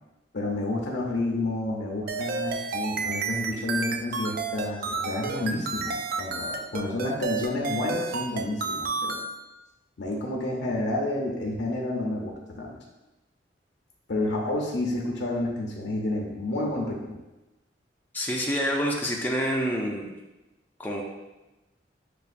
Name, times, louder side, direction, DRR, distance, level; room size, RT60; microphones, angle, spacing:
voice 1, 0.3-9.2 10.0-12.8 14.1-17.2, left 2 dB, 65° left, -1 dB, 0.6 m, -30 dB
sound 1, 2.1-9.3, right 4 dB, 50° right, 0.3 m, -31 dB
voice 2, 18.1-20.1 20.8-21.0, equal, 10° left, -2 dB, 0.4 m, -27 dB
6.7 x 2.3 x 2.5 m, 1.0 s
head